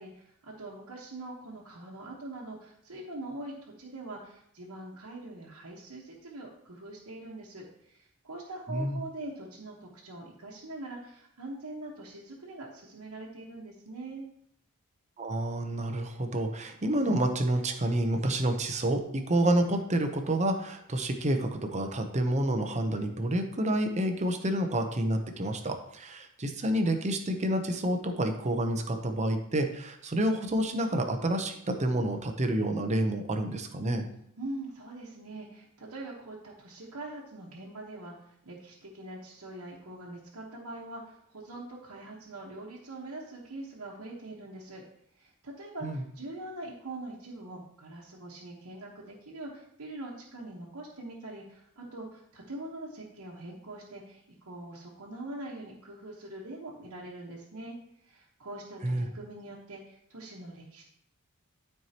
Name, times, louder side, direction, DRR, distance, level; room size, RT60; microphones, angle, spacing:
voice 1, 0.0-14.3 34.4-44.8 45.2-57.7 58.0-60.8, right 2 dB, 75° right, -5 dB, 1.3 m, -43 dB
voice 2, 8.7-9.0 15.2-34.1 45.8-46.0 58.8-59.1, right 1 dB, 30° right, 6 dB, 0.8 m, -29 dB
12.5 x 4.6 x 2.9 m, 0.71 s
head